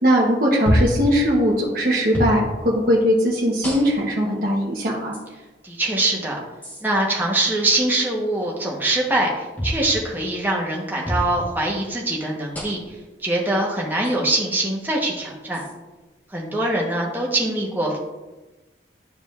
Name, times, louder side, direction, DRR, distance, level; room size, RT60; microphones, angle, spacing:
voice 1, 0.0-5.1, equal, 55° right, -5 dB, 1.0 m, -20 dB
sound 1, 0.7-1.0 2.1-2.4 3.6-4.1 5.1-5.2 6.6-6.8 9.6-9.8 11.0-11.3 12.5-12.9 14.0-14.1 15.5-15.7, equal, 10° left, 1.2 m, -25 dB
voice 2, 5.6-6.4 6.8-12.8 13.2-15.6 16.3-18.0, right 2 dB, 10° right, -3 dB, 1.1 m, -23 dB
11.0 x 4.9 x 2.5 m, 1.1 s
head